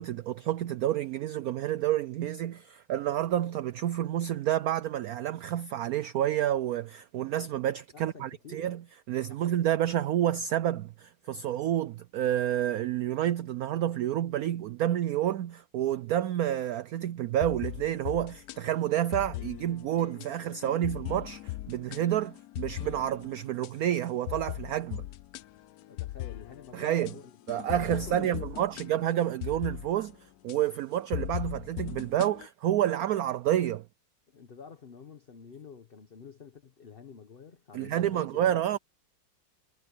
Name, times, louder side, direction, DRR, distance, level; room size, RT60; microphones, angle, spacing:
voice 1, 0.0-8.8 9.1-25.1 26.7-27.1 27.5-33.9 37.7-38.8, right 12 dB, 85° right, 0.8 m, -29 dB
voice 2, 7.9-8.7 9.3-9.8 25.9-28.8 34.3-38.8, left 6 dB, 35° left, 1.0 m, -49 dB
sound 1, 17.4-23.8 24.3-30.2 30.5-30.6 31.1-32.5, left 17 dB, 80° left, 0.8 m, -39 dB
omnidirectional pair, 2.1 m